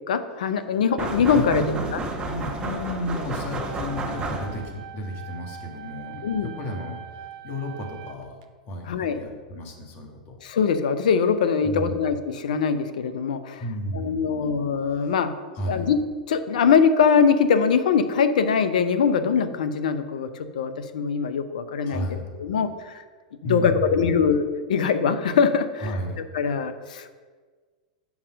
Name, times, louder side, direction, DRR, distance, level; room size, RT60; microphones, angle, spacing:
voice 1, 0.1-1.6 1.9-2.0 6.2-6.5 8.9-9.2 10.4-13.6 13.9-15.3 15.7-16.0 16.3-22.9 23.4-25.9 26.3-27.1, left 6 dB, 70° left, 10 dB, 0.8 m, -22 dB
sound 1, 1.0-4.8, right 2 dB, 20° right, 1.2 m, -31 dB
voice 2, 1.3-8.4 8.7-10.4 11.6-12.0 13.6-15.1 15.5-15.9 21.8-22.4 23.4-24.2 25.8-26.2, equal, 45° left, 1 dB, 2.0 m, -33 dB
sound 2, 3.5-8.4, right 9 dB, 60° right, 0.8 m, -42 dB
7.2 x 5.7 x 6.3 m, 1.5 s
hypercardioid pair, 100°, 4 cm